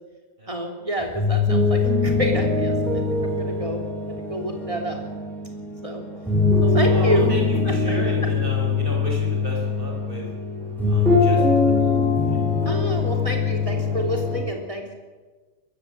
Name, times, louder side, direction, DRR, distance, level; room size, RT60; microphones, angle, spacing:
voice 1, 0.5-5.0 5.8-6.0 6.6-7.3 7.7-8.0 12.7-15.0, equal, 25° right, 2 dB, 3.6 m, -28 dB
sound 1, 1.0-14.4, left 4 dB, ahead, 7.0 m, -22 dB
voice 2, 6.8-10.2 10.9-12.0 12.3-12.5, equal, 45° right, -1 dB, 5.3 m, -32 dB
22.5 x 13.5 x 9.1 m, 1.3 s
omnidirectional pair, 1.3 m